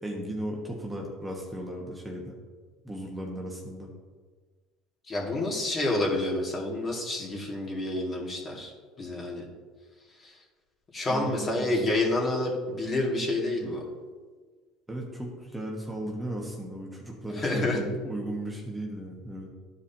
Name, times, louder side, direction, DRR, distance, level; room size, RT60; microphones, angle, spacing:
voice 1, 0.0-2.3 2.8-3.9 11.1-11.9 14.9-19.5, right 1 dB, 10° right, -1 dB, 1.3 m, -36 dB
voice 2, 5.0-8.7 9.0-9.5 10.2-10.4 10.9-13.8 17.3-17.8, left 2 dB, 30° left, -2 dB, 2.1 m, -28 dB
12.5 x 4.9 x 2.9 m, 1.5 s
supercardioid pair, 110°, 0 cm